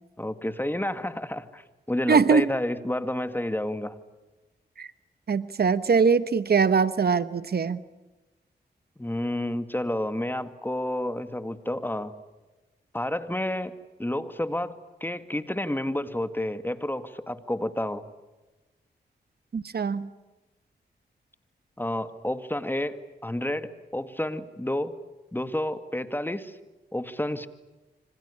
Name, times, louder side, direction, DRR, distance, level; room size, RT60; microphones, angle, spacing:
voice 1, 0.2-4.0 9.0-12.1 12.9-13.7 14.0-18.0 21.8-25.0 25.3-26.6 26.9-27.5, left 1 dB, 10° left, 10 dB, 2.0 m, -30 dB
voice 2, 2.1-2.5 4.8-4.9 5.3-7.8 19.5-20.1, right 5 dB, 60° right, 14 dB, 1.1 m, -22 dB
26.5 x 26.0 x 8.5 m, 1.1 s
cardioid pair, 60°, 18 cm